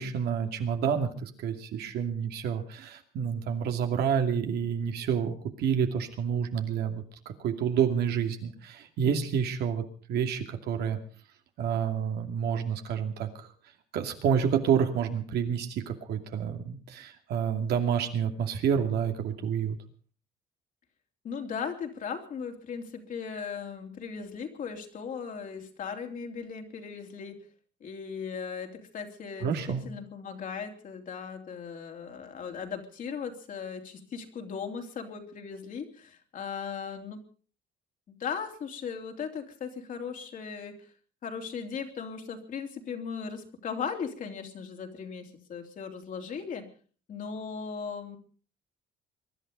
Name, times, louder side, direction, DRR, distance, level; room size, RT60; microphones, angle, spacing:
voice 1, 0.0-9.8 10.1-11.0 11.6-13.3 13.9-19.8 29.4-29.8, right 7 dB, 75° right, 5 dB, 2.5 m, -29 dB
voice 2, 21.2-27.4 27.8-29.6 29.8-37.2 38.2-40.9 41.2-46.7 47.1-48.2, left 6 dB, 50° left, 3 dB, 3.3 m, -37 dB
23.0 x 11.5 x 5.3 m, 0.42 s
cardioid pair, 110°, 17 cm